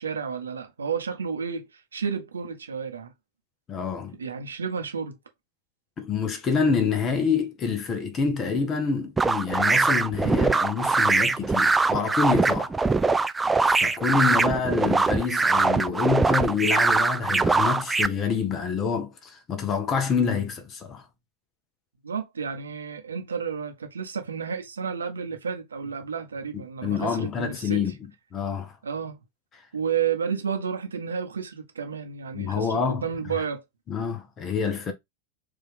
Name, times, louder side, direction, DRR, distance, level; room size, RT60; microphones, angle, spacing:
voice 1, 0.0-1.7 1.9-3.1 4.2-5.2 22.0-27.8 28.8-29.1 29.7-33.6, right 6 dB, 70° right, 1.0 m, -31 dB
voice 2, 3.7-4.2 6.0-12.7 13.7-21.0 26.5-27.9 28.3-28.7 32.3-33.1 33.9-34.9, left 5 dB, 25° left, 1.1 m, -27 dB
sound 1, 9.2-18.1, right 3 dB, 10° right, 0.3 m, -22 dB
4.8 x 2.8 x 3.6 m
figure-of-eight pair, 90°, 0 cm